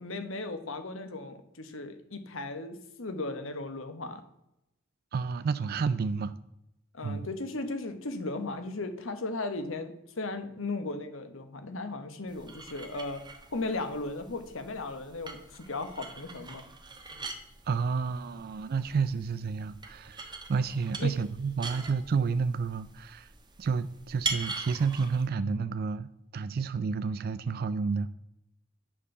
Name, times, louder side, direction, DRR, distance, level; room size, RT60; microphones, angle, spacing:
voice 1, 0.0-4.2 6.9-13.2 13.5-16.6 21.0-21.1, left 2 dB, 70° left, 8 dB, 1.2 m, -36 dB
voice 2, 5.1-6.3 7.0-7.3 17.7-23.3 23.6-28.1, right 5 dB, 50° right, 13 dB, 0.4 m, -30 dB
sound 1, 12.3-25.3, right 4 dB, 20° right, 1.0 m, -42 dB
9.9 x 4.5 x 6.7 m, 0.84 s
head